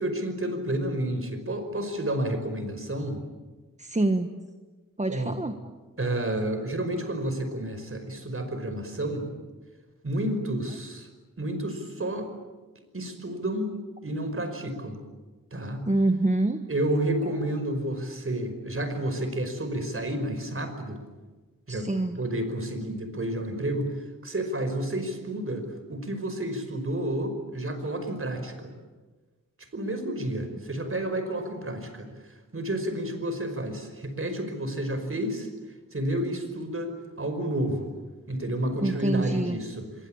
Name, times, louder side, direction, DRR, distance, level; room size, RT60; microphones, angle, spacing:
voice 1, 0.0-3.2 5.1-5.4 6.0-9.3 10.0-11.1 11.4-12.3 12.9-13.7 14.0-15.0 15.5-15.9 16.7-21.0 21.7-21.9 22.2-28.7 29.6-36.9 37.2-37.9 38.3-40.1, right 1 dB, 40° right, 8 dB, 5.2 m, -30 dB
voice 2, 3.8-4.3 5.0-5.6 15.9-16.6 21.7-22.2 38.8-39.6, right 2 dB, 20° right, 7 dB, 1.4 m, -26 dB
26.0 x 23.5 x 8.8 m, 1.3 s
wide cardioid pair, 100°, 33 cm